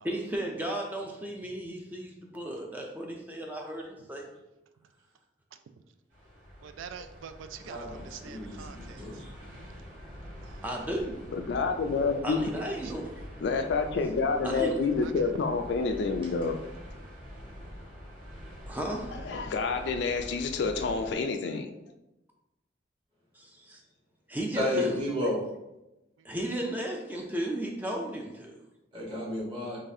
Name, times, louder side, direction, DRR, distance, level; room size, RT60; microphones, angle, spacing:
voice 1, 0.0-4.3 10.6-11.2 12.2-13.1 14.4-14.8 18.7-19.2 23.3-23.8 24.3-24.9 26.2-28.6, right 1 dB, 10° right, 0 dB, 0.4 m, -34 dB
voice 2, 5.5-5.8 6.6-9.7 10.1-10.6 11.6-11.9 12.4-13.1 14.5-15.3 26.2-26.4, right 7 dB, 85° right, 10 dB, 0.3 m, -47 dB
sound 1, 6.1-21.1, equal, 45° right, 1.5 m, -45 dB
voice 3, 7.6-9.3 24.5-25.4 28.9-29.8, left 1 dB, 30° right, -6 dB, 1.2 m, -32 dB
voice 4, 11.3-12.4 13.4-16.6 19.3-21.7, left 4 dB, 65° left, 6 dB, 0.3 m, -28 dB
3.9 x 3.3 x 2.6 m, 0.95 s
head